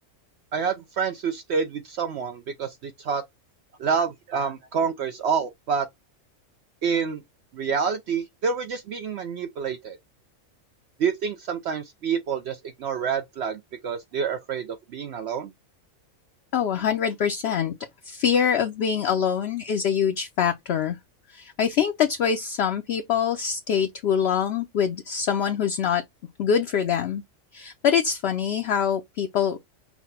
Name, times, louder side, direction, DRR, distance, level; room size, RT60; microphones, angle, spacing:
voice 1, 0.5-3.2 3.8-5.9 6.8-7.2 7.5-10.0 11.0-15.5, right 6 dB, 65° right, 0.8 m, -28 dB
voice 2, 16.5-17.7 18.0-21.0 21.3-26.0 26.4-27.2 27.5-29.6, left 8 dB, 60° left, 0.8 m, -24 dB
5.8 x 2.2 x 4.2 m
omnidirectional pair, 1.4 m